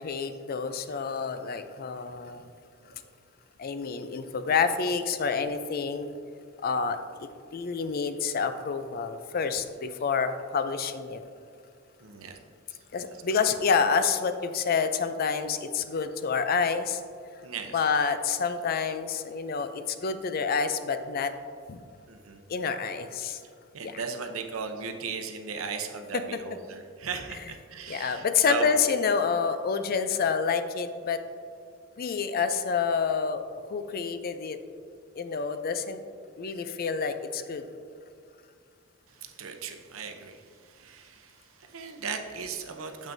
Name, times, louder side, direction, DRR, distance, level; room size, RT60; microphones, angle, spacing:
voice 1, 0.0-2.5 3.6-6.1 6.6-11.2 12.9-17.0 17.7-21.3 21.7-21.8 22.5-23.4 23.8-24.0 26.1-26.2 27.9-31.2 32.0-33.4 33.7-34.6 35.2-36.0 36.4-37.7, left 5 dB, 45° left, 9 dB, 0.4 m, -28 dB
voice 2, 12.0-12.4 13.3-13.4 17.4-17.8 22.1-22.4 23.7-28.7 39.1-43.1, right 5 dB, 75° right, 5 dB, 0.7 m, -37 dB
9.1 x 7.2 x 2.6 m, 2.3 s
head